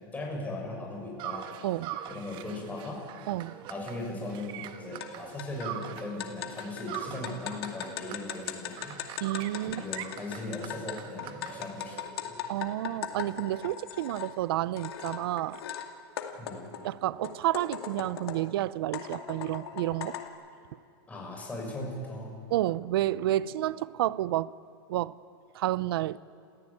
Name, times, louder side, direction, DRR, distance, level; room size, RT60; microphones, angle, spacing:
voice 1, 0.1-1.5 2.1-3.0 3.7-8.9 9.7-12.3 16.4-16.7 21.1-22.3, left 2 dB, 10° left, 6.9 m, -38 dB
sound 1, 1.2-6.3 6.6-12.1, right 11 dB, 40° right, 1.3 m, -43 dB
voice 2, 1.6-2.0 3.3-3.6 9.2-9.8 12.5-15.6 16.8-20.2 22.5-24.5 24.9-25.1 25.5-26.2, right 14 dB, 75° right, 0.6 m, -30 dB
sound 2, 5.0-5.1 5.4-14.3 14.8-15.9 16.2-18.5 18.9-20.3, left 10 dB, 85° left, 2.3 m, -39 dB
27.5 x 15.5 x 8.7 m
supercardioid pair, 135°, 13 cm